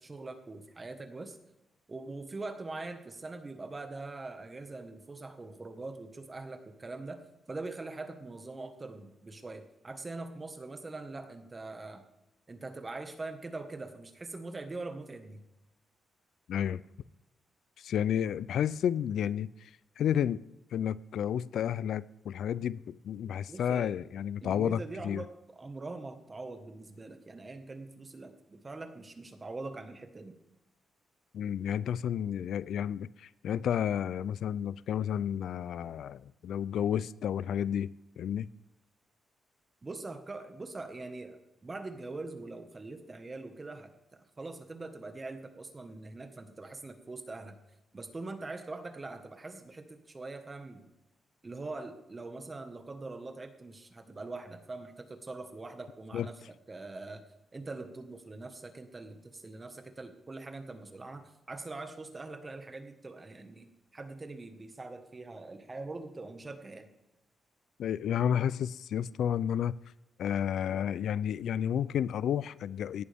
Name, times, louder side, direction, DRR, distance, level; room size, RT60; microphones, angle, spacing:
voice 1, 0.0-1.4 1.9-7.2 7.5-12.0 12.5-15.4 23.5-23.9 24.4-30.4 39.8-47.6 47.9-50.9 51.4-56.3 56.7-57.2 57.5-66.9, right 3 dB, 25° right, 7 dB, 1.5 m, -43 dB
voice 2, 16.5-16.8 17.8-19.7 20.0-20.4 20.7-25.2 31.3-38.5 56.1-56.3 67.8-69.7 70.2-73.0, left 9 dB, 75° left, 19 dB, 0.4 m, -31 dB
17.5 x 11.0 x 3.6 m, 0.94 s
cardioid pair, 125°, 0 cm